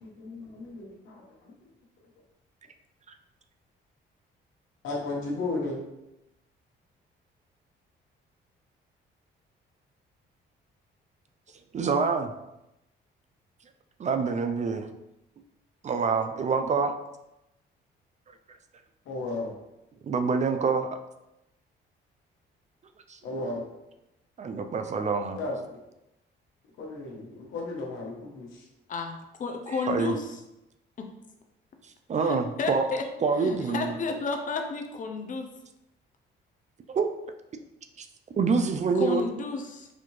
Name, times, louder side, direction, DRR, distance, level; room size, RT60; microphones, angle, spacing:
voice 1, 0.0-1.5 4.8-5.8 19.0-19.5 23.2-23.6 25.4-25.5 26.8-28.7, left 2 dB, 80° left, -2 dB, 1.1 m, -34 dB
voice 2, 11.7-12.3 14.0-14.9 15.8-16.9 20.0-20.9 23.1-23.2 24.4-25.4 29.8-30.1 32.1-32.9 33.2-33.9 36.9-37.1 38.0-38.1 38.4-39.2, right 5 dB, 35° right, 7 dB, 0.4 m, -26 dB
voice 3, 28.9-30.4 31.0-31.1 32.2-33.0 33.4-35.5 38.9-39.9, left 4 dB, 40° left, 4 dB, 0.6 m, -32 dB
4.1 x 2.7 x 3.1 m, 0.90 s
cardioid pair, 90°, 20 cm